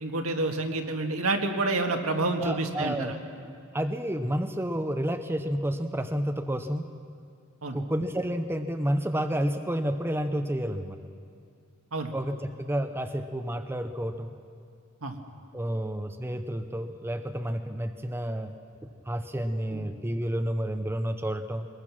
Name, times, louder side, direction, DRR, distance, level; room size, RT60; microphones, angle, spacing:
voice 1, 0.0-3.2 7.6-7.8 11.9-12.1 15.0-15.2 19.7-19.8, right 2 dB, 75° right, 4 dB, 1.7 m, -28 dB
voice 2, 2.4-3.2 3.7-6.8 7.7-11.0 12.1-14.3 15.5-18.5 19.1-21.7, equal, 10° right, 7 dB, 0.7 m, -30 dB
21.5 x 21.0 x 6.1 m, 2.3 s
head